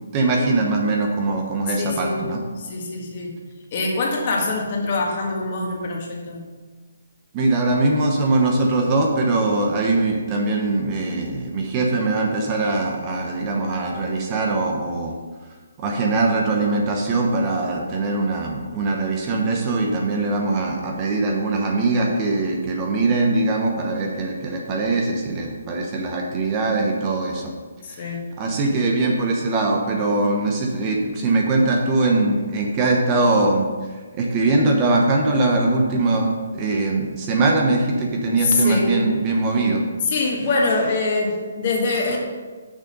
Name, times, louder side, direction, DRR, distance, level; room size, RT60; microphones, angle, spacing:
voice 1, 0.0-2.4 7.3-15.2 15.8-27.5 27.9-33.7 34.1-39.8, right 2 dB, 25° right, 1 dB, 1.0 m, -21 dB
voice 2, 1.8-2.2 2.6-3.3 3.7-6.4 27.8-28.2 38.4-39.0 40.0-42.2, left 3 dB, 40° left, -1 dB, 1.7 m, -24 dB
6.6 x 6.3 x 5.3 m, 1.4 s
hypercardioid pair, 160°, 0 cm